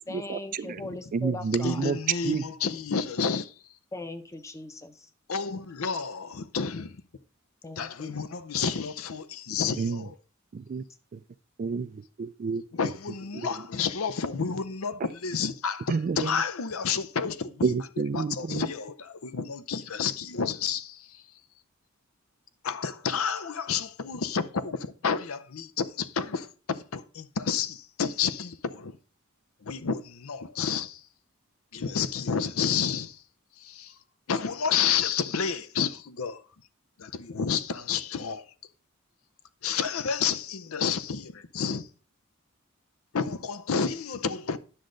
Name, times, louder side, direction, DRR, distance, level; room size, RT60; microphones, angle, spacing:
voice 1, 0.1-1.8 3.9-5.1 7.6-8.2, left 2 dB, 15° left, 0.7 m, -40 dB
voice 2, 1.1-2.0 2.2-2.4 9.8-10.0 10.5-10.8 11.6-12.6 15.9-16.4 17.6-18.6, right 5 dB, 40° right, 0.3 m, -29 dB
voice 3, 1.6-3.5 5.3-7.0 7.8-10.1 12.7-17.7 18.1-21.2 22.6-28.9 29.6-31.0 31.7-33.2 33.6-34.0 34.3-36.4 37.0-38.5 39.6-41.9 43.1-44.6, left 6 dB, 75° left, 0.6 m, -30 dB
9.9 x 6.3 x 3.8 m
head